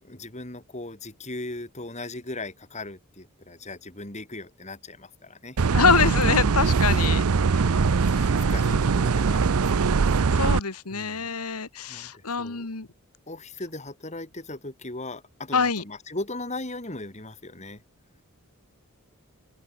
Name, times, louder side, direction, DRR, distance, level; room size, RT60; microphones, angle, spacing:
voice 1, 0.0-5.6 7.0-7.5 7.7-10.1 10.9-11.3 11.9-12.7 13.3-17.8, left 2 dB, 30° left, 3.9 m, -38 dB
sound 1, 5.6-10.6, right 5 dB, 75° right, 0.6 m, -22 dB
voice 2, 5.7-7.7 8.1-8.3 10.3-12.9 15.5-15.8, left 5 dB, 90° left, 1.8 m, -25 dB
open air
head